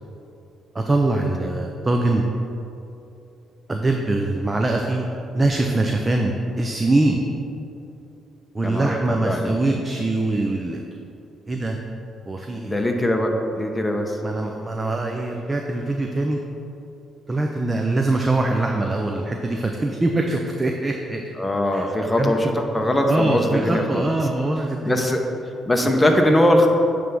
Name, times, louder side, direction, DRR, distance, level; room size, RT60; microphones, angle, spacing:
voice 1, 0.7-2.2 3.7-5.1 5.3-7.2 8.5-10.8 11.5-11.8 12.3-12.8 14.2-16.4 17.3-21.2 21.7-21.9 22.2-22.5 23.1-25.1 25.8-25.9, right 2 dB, 25° right, 2 dB, 0.5 m, -23 dB
voice 2, 8.6-9.8 12.6-14.2 21.4-24.0 24.9-25.2 25.7-26.7, left 1 dB, 15° left, 2 dB, 0.9 m, -21 dB
9.2 x 3.4 x 5.4 m, 2.8 s
cardioid pair, 90°, 0 cm